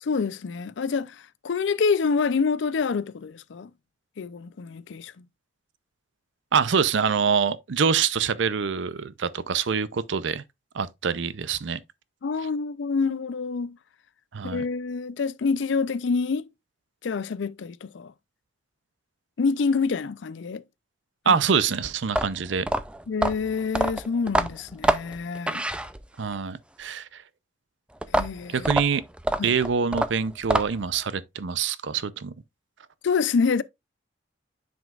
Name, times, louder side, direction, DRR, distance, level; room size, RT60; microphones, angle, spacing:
voice 1, 0.0-3.7 4.2-5.1 12.2-13.8 14.4-16.5 17.0-18.1 19.4-20.6 21.3-21.4 23.1-25.6 28.1-28.7 29.4-29.5 33.0-33.6, left 5 dB, 70° left, 0.4 m, -27 dB
voice 2, 6.5-10.4 10.7-11.8 14.3-14.6 21.3-22.7 26.2-27.2 28.5-29.0 29.4-32.3, right 6 dB, 70° right, 0.5 m, -25 dB
sound 1, 22.0-26.3 28.0-31.0, right 1 dB, 5° right, 0.4 m, -26 dB
9.2 x 5.1 x 2.4 m
head